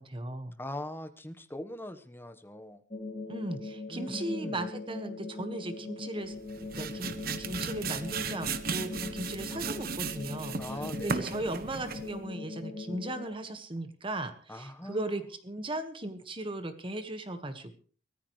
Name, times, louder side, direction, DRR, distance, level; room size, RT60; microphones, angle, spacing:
voice 1, 0.0-0.5 3.3-6.4 6.7-10.6 11.0-17.7, right 1 dB, 30° right, 9 dB, 1.5 m, -37 dB
voice 2, 0.6-2.8 3.9-4.6 10.6-11.4 14.5-15.2, left 1 dB, 10° left, 8 dB, 1.1 m, -41 dB
sound 1, 2.9-13.3, left 2 dB, 35° left, 2.8 m, -41 dB
sound 2, 6.3-12.2, right 5 dB, 55° right, 1.1 m, -36 dB
23.5 x 14.5 x 3.2 m, 0.40 s
head